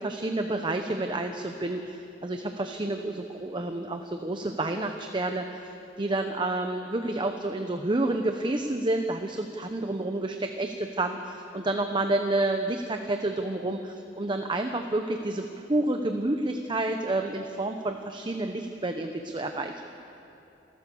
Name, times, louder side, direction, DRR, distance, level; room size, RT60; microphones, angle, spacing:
voice 1, 0.0-19.7, right 2 dB, 25° right, 5 dB, 0.8 m, -29 dB
28.5 x 13.0 x 7.0 m, 2.8 s
head